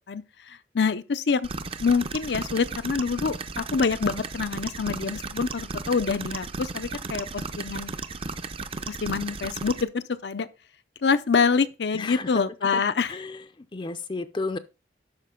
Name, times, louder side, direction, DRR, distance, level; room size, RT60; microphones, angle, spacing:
voice 1, 0.1-1.5 1.8-7.9 8.9-10.5 11.0-13.2, left 5 dB, 75° left, 0.6 m, -26 dB
sound 1, 1.4-9.8, right 4 dB, 30° right, 0.6 m, -35 dB
voice 2, 11.9-12.4 12.7-12.8 13.1-14.6, left 3 dB, 30° left, 0.5 m, -33 dB
12.5 x 5.1 x 3.7 m
head